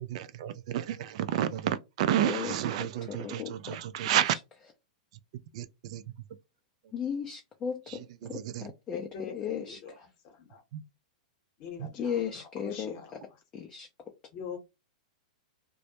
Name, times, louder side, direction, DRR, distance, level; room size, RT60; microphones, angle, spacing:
voice 1, 0.0-4.4 5.1-5.2 5.5-6.2 7.9-8.7 10.7-10.8 11.8-11.9, right 11 dB, 60° right, 0.3 m, -31 dB
voice 2, 3.1-3.8 6.9-9.8 12.0-12.9 13.5-13.9, left 7 dB, 25° left, 0.4 m, -35 dB
voice 3, 8.9-10.6 11.6-13.1 14.3-14.6, left 6 dB, 45° left, 0.9 m, -43 dB
2.1 x 2.0 x 2.8 m
hypercardioid pair, 125°, 4 cm